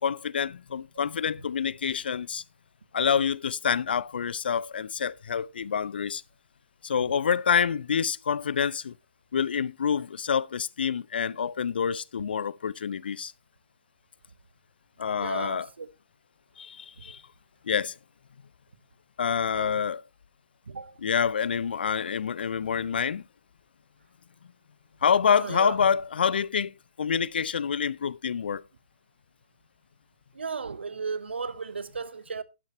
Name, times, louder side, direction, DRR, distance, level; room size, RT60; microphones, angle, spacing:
voice 1, 0.0-2.4 2.9-6.2 6.8-8.9 9.3-13.3 15.0-15.7 16.6-17.2 17.6-18.0 19.2-20.0 21.0-23.2 25.0-28.6, left 7 dB, 55° left, 0.5 m, -27 dB
voice 2, 15.1-15.9 19.5-19.8 20.7-21.0 25.3-25.8 30.3-32.4, right 5 dB, 65° right, 1.1 m, -35 dB
11.5 x 11.0 x 3.0 m
figure-of-eight pair, 135°, 6 cm